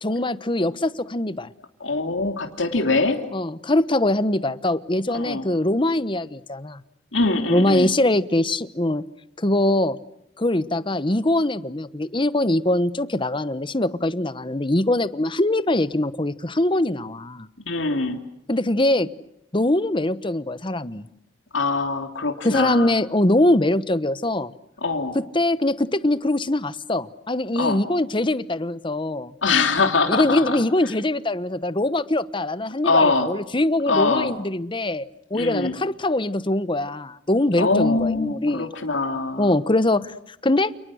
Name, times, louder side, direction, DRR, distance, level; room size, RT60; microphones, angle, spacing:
voice 1, 0.0-1.5 3.3-6.8 7.5-9.0 9.4-10.0 10.4-17.5 18.5-19.1 19.5-21.0 22.4-24.5 25.3-29.3 30.1-38.7 39.4-40.1 40.4-40.7, left 1 dB, 25° left, 15 dB, 1.1 m, -22 dB
voice 2, 1.8-3.2 5.1-5.4 7.1-7.9 17.6-18.2 21.5-22.9 24.8-25.1 27.5-27.8 29.4-30.6 32.8-33.3 33.9-34.3 35.3-35.8 37.6-39.5, left 3 dB, 85° left, 4 dB, 3.0 m, -23 dB
30.0 x 29.5 x 6.4 m, 0.78 s
head